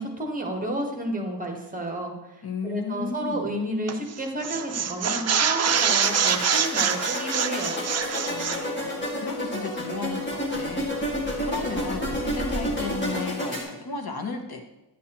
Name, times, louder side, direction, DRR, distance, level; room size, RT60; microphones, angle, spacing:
voice 1, 0.0-2.1 2.6-7.8, right 1 dB, 20° right, 1 dB, 1.2 m, -31 dB
voice 2, 2.4-3.4 8.3-14.6, left 4 dB, 60° left, 4 dB, 1.0 m, -34 dB
sound 1, 3.9-4.1 4.4-8.6, right 7 dB, 40° right, 0.4 m, -25 dB
sound 2, 5.6-13.6, equal, 25° left, 1.8 m, -30 dB
10.0 x 8.4 x 2.9 m, 0.98 s
wide cardioid pair, 145°, 41 cm